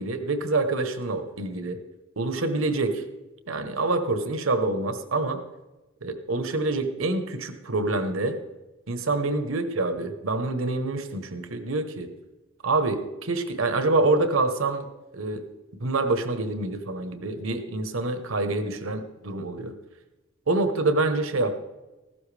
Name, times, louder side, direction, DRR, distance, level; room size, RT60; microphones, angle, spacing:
voice 1, 0.0-1.8 2.2-3.0 3.5-5.4 6.0-8.4 8.9-12.1 12.6-15.4 15.8-19.7 20.5-21.5, right 2 dB, 85° right, 8 dB, 1.2 m, -26 dB
15.0 x 12.5 x 3.4 m, 1.1 s
head